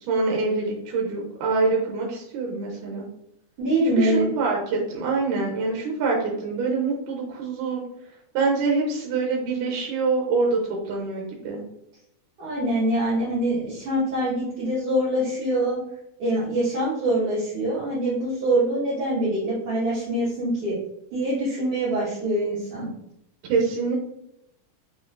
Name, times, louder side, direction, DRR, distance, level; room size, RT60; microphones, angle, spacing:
voice 1, 0.1-3.1 3.9-7.8 8.3-11.6 23.5-24.0, right 4 dB, 75° right, -2 dB, 2.2 m, -25 dB
voice 2, 3.6-4.3 12.4-15.8 16.2-20.8 21.1-22.9, right 1 dB, 50° right, -9 dB, 1.9 m, -24 dB
5.1 x 4.1 x 2.4 m, 0.77 s
omnidirectional pair, 3.9 m